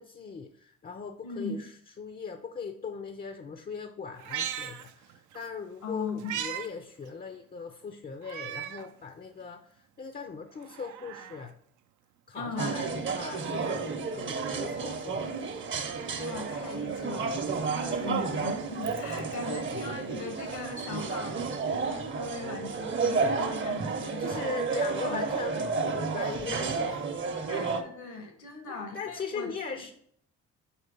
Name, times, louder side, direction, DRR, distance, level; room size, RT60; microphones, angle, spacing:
voice 1, 0.0-1.7 2.0-11.5 12.3-15.3 17.8-18.0 19.2-19.3 24.2-27.1 28.1-28.3 28.7-29.9, left 5 dB, 30° left, 7 dB, 0.5 m, -39 dB
voice 2, 1.2-1.6 5.8-6.3 12.3-12.7 16.2-24.4 24.7-25.7 27.5-29.8, left 3 dB, 80° left, 4 dB, 1.4 m, -39 dB
Meow, 4.1-5.5 5.8-6.7 7.1-7.2 8.2-8.9 9.4-9.5 10.5-11.5 13.0-14.0 15.4-16.2 17.7-19.3 20.6-20.7, right 10 dB, 75° right, 0.5 m, -40 dB
sound 1, 12.6-27.8, right 4 dB, 40° right, 0.8 m, -31 dB
4.4 x 4.3 x 5.3 m, 0.65 s
cardioid pair, 90°, 30 cm